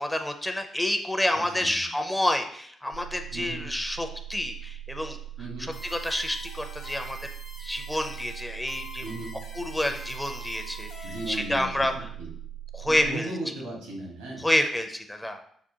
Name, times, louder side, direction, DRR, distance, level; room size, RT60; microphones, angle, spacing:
voice 1, 0.0-5.2 5.6-7.2 7.6-9.0 9.5-10.9 11.3-11.9 12.7-13.3 14.4-15.4, left 1 dB, 10° left, 6 dB, 0.5 m, -28 dB
voice 2, 1.3-1.9 3.3-3.7 5.4-5.7 9.0-9.3 11.0-12.3 12.9-14.5, right 2 dB, 85° right, -2 dB, 1.1 m, -36 dB
sound 1, 2.9-13.1, right 12 dB, 60° right, 0.6 m, -41 dB
sound 2, 5.7-11.7, left 1 dB, 70° left, 0.9 m, -45 dB
5.9 x 2.2 x 2.8 m, 0.62 s
hypercardioid pair, 40°, 0 cm